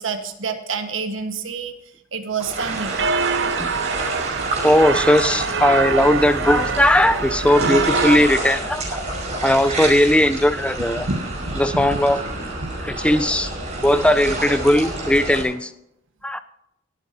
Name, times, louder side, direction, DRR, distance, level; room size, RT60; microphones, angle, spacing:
voice 1, 0.0-1.7 2.1-3.0 11.0-11.9 12.6-12.7, right 4 dB, 90° right, 6 dB, 1.5 m, -28 dB
sound 1, 2.4-15.4, right 2 dB, 35° right, 5.4 m, -29 dB
sound 2, 2.6-8.2, right 5 dB, 60° right, 0.6 m, -24 dB
voice 2, 4.6-9.0 9.4-11.1 11.6-12.2 12.8-13.5 13.8-15.7 16.2-16.4, left 1 dB, 5° left, 10 dB, 0.6 m, -18 dB
23.5 x 9.1 x 2.8 m, 0.79 s
head